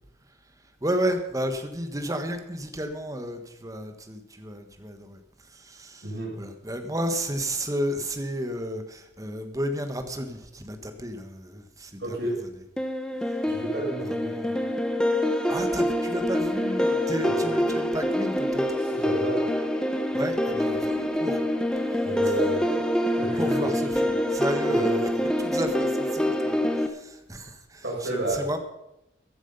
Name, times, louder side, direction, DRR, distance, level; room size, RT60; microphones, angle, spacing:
voice 1, 0.8-5.2 5.5-6.1 6.4-12.2 14.1-14.6 15.5-18.7 20.1-21.4 21.9-22.1 23.4-25.1 25.4-28.6, equal, 20° right, 7 dB, 1.5 m, -32 dB
voice 2, 6.0-6.4 12.0-12.4 13.4-14.4 17.2-17.3 18.8-19.5 22.0-22.9 23.1-23.7 24.7-24.9 27.8-28.5, right 2 dB, 75° right, -3 dB, 6.4 m, -31 dB
sound 1, 12.8-26.9, left 1 dB, 5° left, 1.0 m, -26 dB
14.5 x 11.0 x 5.5 m, 0.85 s
head